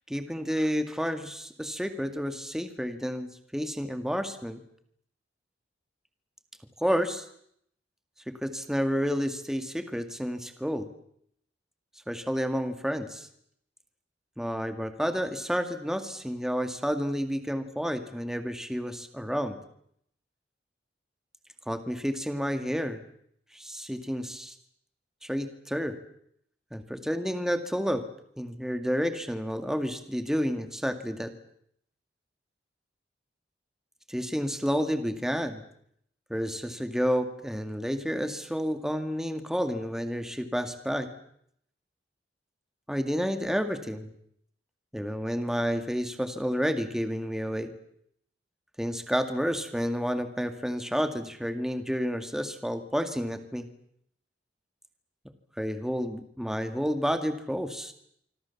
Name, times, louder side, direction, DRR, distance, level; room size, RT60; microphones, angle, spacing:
voice 1, 0.1-4.6 6.8-7.3 8.3-10.9 12.1-13.3 14.4-19.6 21.7-23.0 23.5-24.5 25.2-26.0 26.7-28.1 28.4-31.3 34.1-35.6 36.3-41.1 42.9-44.1 44.9-47.7 48.8-53.7 55.6-57.9, equal, 5° right, 8 dB, 2.0 m, -30 dB
26.0 x 25.5 x 7.2 m, 0.70 s
head